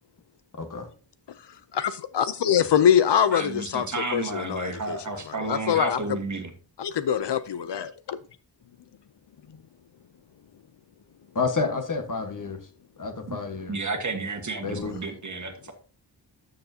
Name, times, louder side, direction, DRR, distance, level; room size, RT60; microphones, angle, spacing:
voice 1, 0.5-0.9 11.3-12.6 13.0-13.8 14.6-14.9, left 4 dB, 45° left, 1.5 m, -29 dB
voice 2, 1.7-5.0 5.4-6.0 6.8-8.2, left 9 dB, 70° left, 0.6 m, -24 dB
voice 3, 3.3-6.5 13.3-13.4 13.7-15.7, right 3 dB, 40° right, 1.6 m, -32 dB
12.5 x 6.7 x 2.8 m
wide cardioid pair, 110°, 44 cm